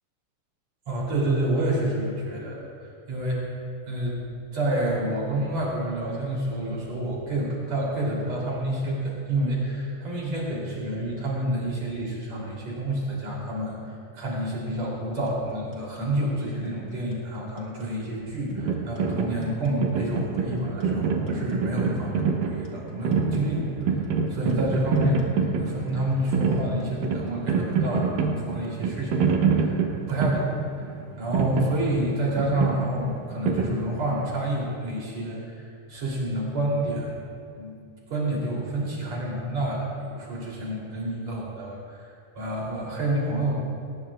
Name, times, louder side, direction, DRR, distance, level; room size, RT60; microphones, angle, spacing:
voice 1, 0.9-3.5 3.9-4.2 4.5-30.9 31.2-37.1 37.5-37.8 38.1-42.0 42.4-43.5, right 1 dB, 50° right, -4 dB, 4.5 m, -28 dB
sound 1, 15.3-28.1, left 4 dB, 80° left, 0.8 m, -43 dB
sound 2, 18.6-34.3, right 5 dB, 75° right, 2.5 m, -27 dB
19.5 x 19.5 x 2.5 m, 2.4 s
omnidirectional pair, 4.1 m